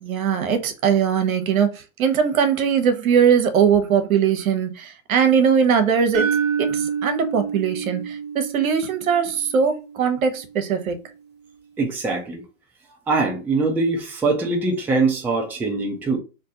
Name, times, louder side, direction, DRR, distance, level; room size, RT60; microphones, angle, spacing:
voice 1, 0.0-11.0, right 7 dB, 75° right, 0.9 m, -20 dB
sound 1, 6.1-10.2, right 6 dB, 25° right, 1.0 m, -27 dB
voice 2, 11.8-12.4 13.1-16.2, right 3 dB, 5° right, 0.4 m, -22 dB
2.6 x 2.5 x 3.7 m
hypercardioid pair, 115°, 42 cm